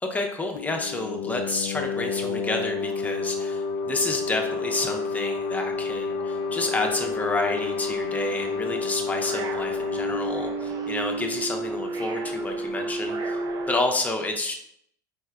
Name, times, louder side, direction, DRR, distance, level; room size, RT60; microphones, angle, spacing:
voice 1, 0.0-13.4 13.7-14.5, left 2 dB, 15° left, 3 dB, 0.7 m, -29 dB
sound 1, 0.6-12.0, left 4 dB, 70° left, 0.4 m, -30 dB
sound 2, 1.9-2.0 2.3-13.8, right 3 dB, 40° right, 0.5 m, -35 dB
4.5 x 4.1 x 2.2 m, 0.69 s
hypercardioid pair, 90°, 10 cm